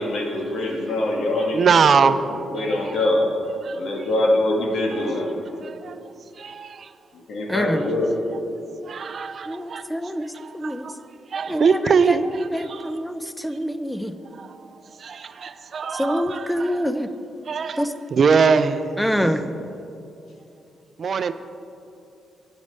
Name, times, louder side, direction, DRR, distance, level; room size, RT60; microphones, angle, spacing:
voice 1, 0.0-2.1 2.5-3.3 3.7-5.3 7.1-8.1, left 1 dB, 70° left, 1.9 m, -23 dB
voice 2, 1.5-2.7 3.6-3.8 4.9-5.0 5.6-6.9 8.8-9.9 10.3-11.0 11.3-12.9 14.3-14.7 15.0-16.9 17.5-19.5 21.0-21.3, right 5 dB, 50° right, 0.4 m, -23 dB
voice 3, 7.5-7.8 9.5-10.3 10.5-10.8 11.5-11.9 12.5-14.1 16.0-17.1 17.8-17.9 19.0-19.4, equal, 5° left, 0.5 m, -25 dB
9.6 x 8.1 x 5.4 m
cardioid pair, 95°, 0 cm